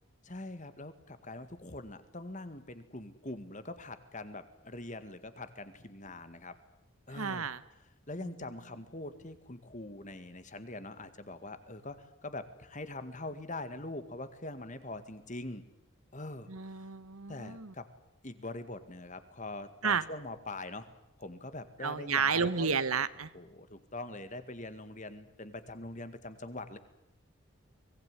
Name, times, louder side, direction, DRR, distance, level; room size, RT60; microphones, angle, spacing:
voice 1, 0.2-6.6 7.1-7.5 8.1-15.7 16.1-16.7 17.3-17.9 18.2-20.9 21.2-22.8 23.3-26.8, left 2 dB, 35° left, 11 dB, 2.0 m, -43 dB
voice 2, 7.1-7.6 16.5-17.7 19.8-20.0 21.8-23.3, right 6 dB, 80° right, 15 dB, 1.3 m, -31 dB
24.5 x 19.5 x 9.8 m, 0.88 s
head